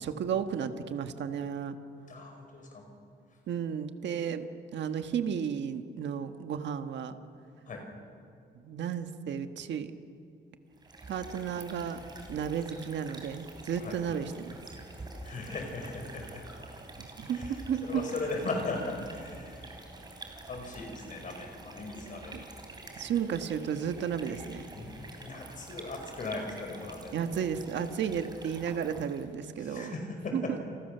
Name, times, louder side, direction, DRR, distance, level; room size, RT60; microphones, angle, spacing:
voice 1, 0.0-1.8 3.5-7.2 8.6-9.9 11.1-12.0 12.3-14.6 17.0-18.0 22.3-22.4 23.0-24.7 27.1-29.9 30.3-30.6, right 7 dB, 75° right, 8 dB, 1.4 m, -33 dB
voice 2, 2.1-2.9 7.7-7.9 13.8-14.0 15.2-16.5 17.3-19.7 20.5-22.4 24.7-27.1 29.6-30.6, left 3 dB, 45° left, 3 dB, 5.4 m, -38 dB
sound 1, 10.7-29.3, right 2 dB, 20° right, 3.6 m, -47 dB
29.5 x 29.0 x 6.8 m, 2.5 s
wide cardioid pair, 180°, 19 cm